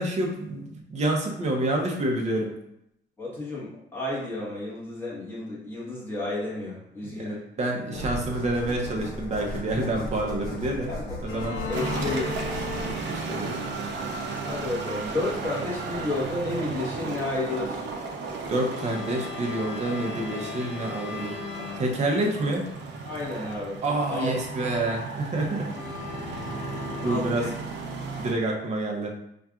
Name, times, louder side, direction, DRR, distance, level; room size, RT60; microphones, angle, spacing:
voice 1, 0.0-2.5 7.6-10.9 11.2-11.6 13.1-13.5 18.5-21.4 21.8-22.6 23.8-25.7 27.0-27.4 28.2-29.2, right 1 dB, 35° right, 0 dB, 0.8 m, -28 dB
voice 2, 3.2-7.4 10.9-11.2 11.6-12.3 14.4-17.9 22.2-22.3 23.0-23.8 24.1-24.4 27.0-27.5, left 2 dB, 10° left, -7 dB, 1.3 m, -31 dB
sound 1, 7.9-16.4, left 1 dB, 55° left, 1.3 m, -38 dB
sound 2, 11.2-13.6 18.6-22.7 25.5-27.9, left 4 dB, 70° left, 0.6 m, -38 dB
sound 3, 11.7-28.3, right 4 dB, 70° right, 0.6 m, -35 dB
5.6 x 2.4 x 2.4 m, 0.78 s
cardioid pair, 150°, 20 cm